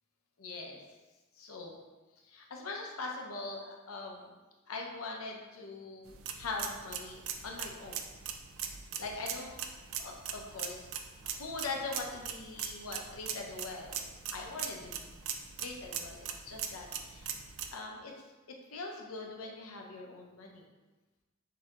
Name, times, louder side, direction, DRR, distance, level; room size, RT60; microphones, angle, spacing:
voice 1, 0.4-0.8 1.4-1.8 2.2-4.3 4.7-8.0 9.0-9.6 10.0-14.0 14.3-15.1 15.6-17.3 17.7-18.1 18.7-20.7, left 3 dB, 80° left, 0 dB, 0.7 m, -42 dB
sound 1, 6.1-17.7, right 8 dB, 65° right, 0.4 m, -41 dB
6.6 x 2.8 x 2.4 m, 1.2 s
head